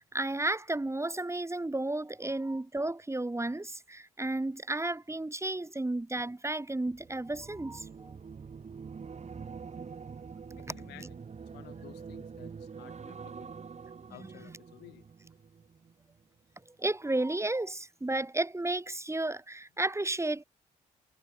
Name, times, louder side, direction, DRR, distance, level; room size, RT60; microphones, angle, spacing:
voice 1, 0.0-8.1 16.7-20.4, right 2 dB, 15° right, 2.8 m, -33 dB
sound 1, 6.9-16.2 16.6-16.9, right 5 dB, 40° right, 1.9 m, -46 dB
voice 2, 9.3-9.7 10.5-13.5 14.1-15.1, left 18 dB, 80° left, 5.5 m, -54 dB
hypercardioid pair, 45°, 17 cm